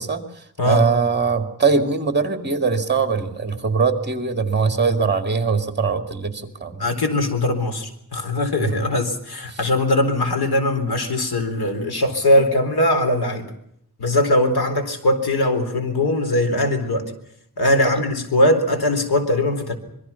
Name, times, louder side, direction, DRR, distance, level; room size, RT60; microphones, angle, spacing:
voice 1, 0.0-6.9 8.6-8.9 9.5-9.6 17.8-17.9, right 5 dB, 30° right, 6 dB, 2.3 m, -22 dB
voice 2, 6.8-13.5 14.0-17.1 17.6-19.8, left 1 dB, 85° left, 6 dB, 4.1 m, -20 dB
26.0 x 22.5 x 5.8 m, 0.73 s
wide cardioid pair, 175°, 37 cm